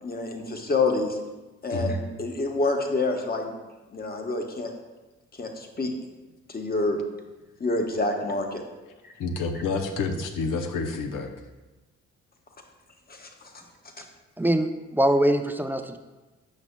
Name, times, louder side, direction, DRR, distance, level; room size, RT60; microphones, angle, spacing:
voice 1, 0.0-1.2 1.6-3.5 3.9-4.7 5.4-5.9 6.5-7.0 7.6-8.6 13.1-13.3, left 3 dB, 30° left, 3 dB, 1.1 m, -27 dB
voice 2, 9.2-11.3, left 4 dB, 75° left, 6 dB, 0.7 m, -28 dB
voice 3, 14.4-16.0, right 1 dB, 5° right, 7 dB, 0.5 m, -23 dB
8.3 x 6.0 x 2.2 m, 1.1 s
supercardioid pair, 50°, 32 cm